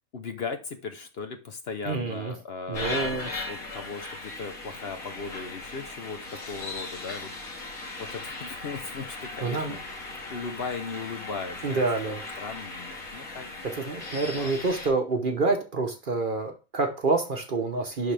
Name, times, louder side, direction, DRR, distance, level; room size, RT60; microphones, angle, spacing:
voice 1, 0.1-7.3 8.0-9.8 10.3-13.5 14.3-14.5, left 5 dB, 50° left, 7 dB, 0.9 m, -37 dB
voice 2, 1.8-2.3 2.7-3.3 9.4-9.8 11.6-12.2 13.8-18.1, right 3 dB, 40° right, 5 dB, 0.9 m, -27 dB
sound 1, 2.7-14.9, left 2 dB, 90° left, 2.3 m, -38 dB
11.0 x 3.9 x 3.3 m, 0.32 s
omnidirectional pair, 1.5 m